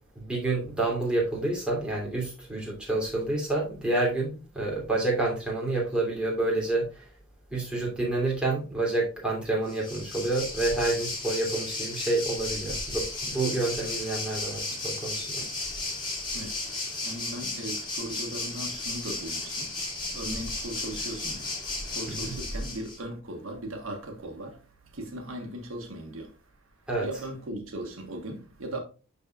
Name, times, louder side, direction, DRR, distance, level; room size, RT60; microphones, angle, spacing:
voice 1, 0.1-7.1 7.5-15.5 22.1-22.4 26.9-27.2, right 2 dB, 5° right, 2.8 m, -28 dB
Waves surf, 9.7-23.0, left 2 dB, 25° left, 2.2 m, -34 dB
voice 2, 16.3-16.7 17.0-19.8 20.1-28.8, right 1 dB, 90° right, 1.5 m, -38 dB
11.5 x 4.2 x 2.4 m
head